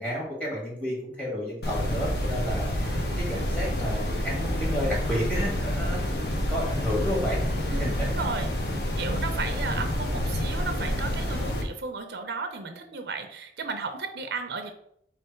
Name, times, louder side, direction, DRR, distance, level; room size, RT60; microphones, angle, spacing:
voice 1, 0.0-7.4 7.7-8.1 9.6-9.8, equal, 10° left, -6 dB, 1.7 m, -31 dB
sound 1, 1.6-11.6, left 1 dB, 65° left, 0.7 m, -28 dB
voice 2, 7.7-8.5 9.0-14.7, right 4 dB, 70° right, 6 dB, 0.6 m, -34 dB
3.4 x 3.3 x 4.4 m, 0.70 s
head